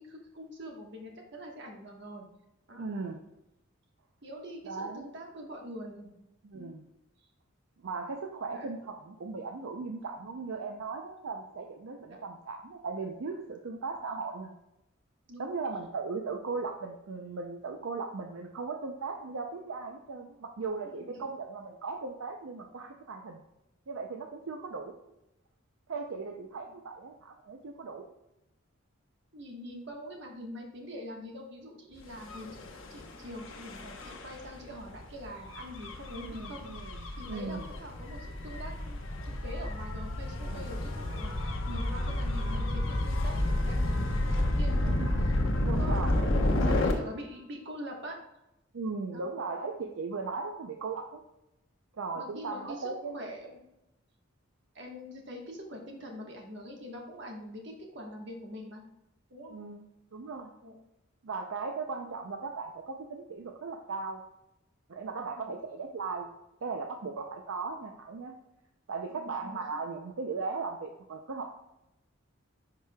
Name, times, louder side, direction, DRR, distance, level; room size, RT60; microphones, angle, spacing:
voice 1, 0.1-2.2 2.7-2.9 4.2-6.1 6.5-6.7 8.5-8.7 12.1-12.2 15.3-15.5 20.9-21.2 29.3-32.5 32.9-36.7 37.2-39.0 39.2-45.0 45.6-46.2 46.5-48.2 49.1-49.2 52.1-53.6 54.7-58.8 59.3-59.6 60.6-60.8 62.0-62.2 65.2-65.5 69.1-69.8, equal, 55° right, 1 dB, 1.4 m, -44 dB
voice 2, 2.7-3.2 4.6-5.1 6.4-6.8 7.8-14.5 15.4-23.4 23.9-25.0 25.9-28.1 36.1-37.6 40.5-40.6 44.8-45.2 45.6-46.5 48.7-51.2 51.9-53.2 59.5-60.5 61.2-64.2 64.9-66.3 66.6-68.4 68.9-71.5, right 4 dB, 75° right, 3 dB, 0.5 m, -38 dB
Gull seagull / Waves surf / Siren, 32.2-46.9, left 1 dB, 70° left, 0.9 m, -31 dB
10.0 x 4.8 x 2.3 m, 0.89 s
head